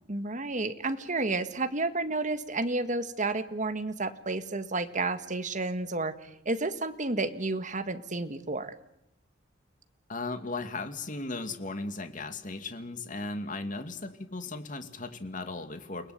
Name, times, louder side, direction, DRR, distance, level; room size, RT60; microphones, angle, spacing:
voice 1, 0.1-6.1 6.5-8.7, right 2 dB, 40° right, 9 dB, 1.8 m, -31 dB
voice 2, 10.1-16.1, left 3 dB, 45° left, 8 dB, 2.5 m, -36 dB
30.0 x 19.5 x 9.5 m, 0.80 s
head